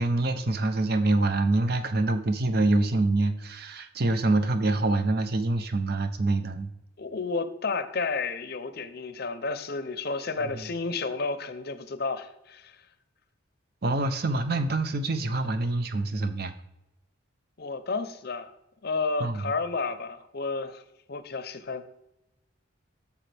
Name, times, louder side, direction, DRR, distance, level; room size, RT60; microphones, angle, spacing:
voice 1, 0.0-6.7 10.5-10.6 13.8-16.5 19.2-19.4, right 2 dB, 50° right, 0.6 m, -25 dB
voice 2, 7.0-12.8 17.6-18.6 18.8-20.8 21.1-21.8, left 4 dB, 50° left, 0.6 m, -31 dB
10.0 x 7.1 x 3.4 m
head